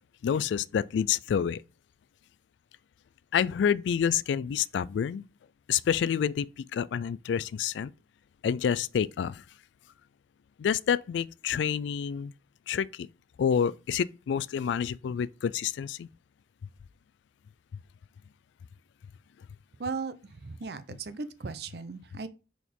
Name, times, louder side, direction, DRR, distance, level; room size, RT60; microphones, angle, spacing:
voice 1, 0.2-1.6 3.3-5.2 5.7-7.9 8.4-9.4 10.6-12.3 12.7-13.1 13.4-16.1, left 8 dB, 80° left, 0.3 m, -28 dB
voice 2, 19.8-20.1 20.4-22.3, right 4 dB, 60° right, 0.5 m, -36 dB
4.5 x 4.2 x 5.3 m
head